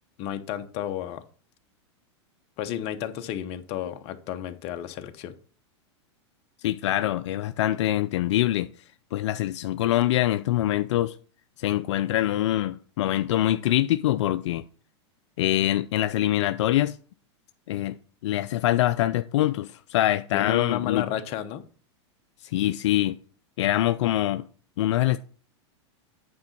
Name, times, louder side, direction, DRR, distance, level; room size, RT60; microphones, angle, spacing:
voice 1, 0.2-1.2 2.6-5.4 20.3-21.6, left 11 dB, 45° left, 0.9 m, -31 dB
voice 2, 6.6-8.7 9.1-11.1 11.6-14.6 15.4-17.0 17.7-18.0 18.2-21.1 22.4-23.2 23.6-24.4 24.8-25.2, left 14 dB, 75° left, 0.4 m, -24 dB
8.8 x 3.8 x 5.8 m
hypercardioid pair, 125°, 15 cm